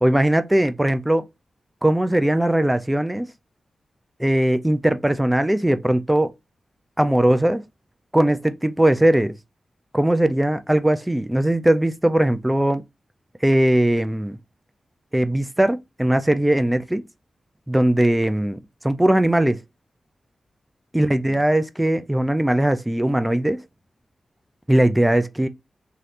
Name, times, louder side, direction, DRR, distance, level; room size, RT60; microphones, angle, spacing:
voice 1, 0.0-1.3 1.8-3.3 4.2-6.3 7.0-7.6 8.1-9.3 9.9-12.8 13.4-14.4 15.1-17.0 17.7-18.6 18.8-19.6 20.9-23.6 24.7-25.5, right 1 dB, 10° right, 0.4 m, -19 dB
3.1 x 2.8 x 2.5 m
cardioid pair, 45°, 0 cm